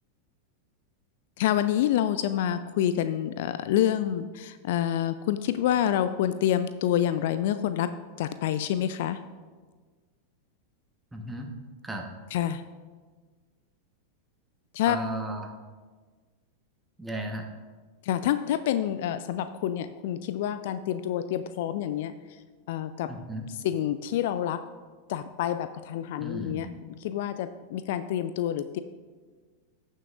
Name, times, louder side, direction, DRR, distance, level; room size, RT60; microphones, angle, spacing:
voice 1, 1.4-7.9 8.2-9.2 12.3-12.6 14.7-15.0 18.0-22.1 22.7-23.1 23.6-24.6 25.1-26.7 27.0-28.8, left 11 dB, 50° left, 12 dB, 0.3 m, -27 dB
voice 2, 11.1-11.5 11.8-12.0 14.9-15.5 17.0-17.4 23.1-23.5 26.2-26.8, right 1 dB, 5° right, 3 dB, 1.1 m, -35 dB
15.5 x 6.5 x 2.5 m, 1.4 s
figure-of-eight pair, 90°, 0 cm